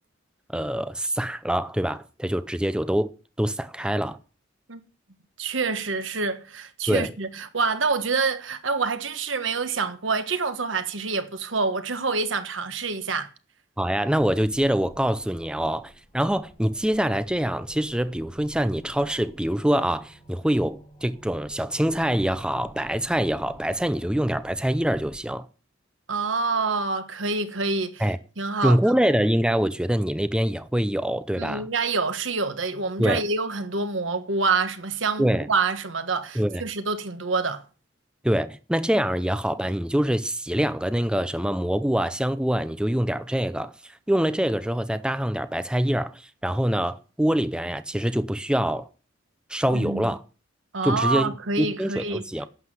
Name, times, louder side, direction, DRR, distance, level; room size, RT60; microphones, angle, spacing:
voice 1, 0.5-3.1 3.4-4.2 6.9-7.1 13.8-25.5 28.0-28.2 28.6-31.7 33.0-33.2 35.2-35.5 36.3-36.6 38.2-48.9 49.5-50.2 50.8-51.3 51.6-52.5, equal, 5° right, 0.6 m, -25 dB
voice 2, 5.4-13.3 26.1-28.1 28.4-28.8 31.3-37.7 49.7-50.1 50.7-52.2, right 4 dB, 80° right, 1.4 m, -27 dB
sound 1, 14.1-25.2, right 1 dB, 30° left, 6.1 m, -50 dB
11.5 x 7.9 x 7.7 m
head